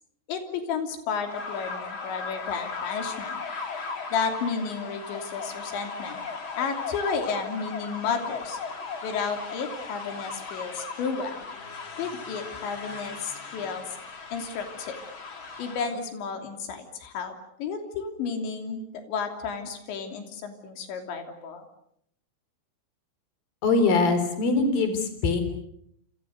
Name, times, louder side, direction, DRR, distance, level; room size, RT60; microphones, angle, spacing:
voice 1, 0.3-3.4 4.1-6.2 6.6-8.6 9.0-11.5 12.0-13.9 14.3-15.0 15.6-21.7, left 5 dB, 80° left, 5 dB, 5.4 m, -32 dB
sound 1, 1.1-16.0, left 4 dB, 35° left, 2.5 m, -37 dB
voice 2, 23.6-25.4, left 3 dB, 55° left, 9 dB, 5.6 m, -22 dB
29.5 x 26.5 x 6.6 m, 0.70 s
omnidirectional pair, 5.2 m